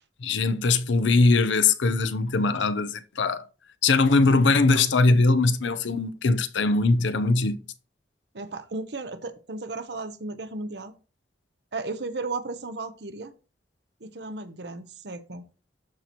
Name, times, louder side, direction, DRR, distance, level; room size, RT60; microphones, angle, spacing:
voice 1, 0.2-3.4 3.8-7.6, left 3 dB, 85° left, 0.7 m, -21 dB
voice 2, 8.3-10.9 11.7-13.3 14.0-15.4, right 3 dB, 65° right, 0.9 m, -35 dB
12.5 x 4.3 x 2.9 m
head